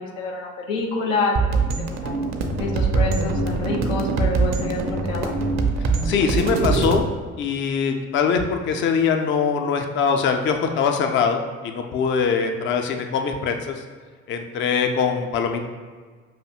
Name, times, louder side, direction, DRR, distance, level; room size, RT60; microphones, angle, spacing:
voice 1, 0.0-1.7 2.0-2.2 2.6-5.3, left 3 dB, 80° left, 0 dB, 0.7 m, -27 dB
sound 1, 1.4-7.0, right 4 dB, 45° right, 0.6 m, -23 dB
voice 2, 6.0-7.0 7.4-13.7 14.3-15.7, left 6 dB, 30° left, 5 dB, 0.4 m, -22 dB
5.7 x 2.7 x 2.3 m, 1.5 s
figure-of-eight pair, 55°, 38 cm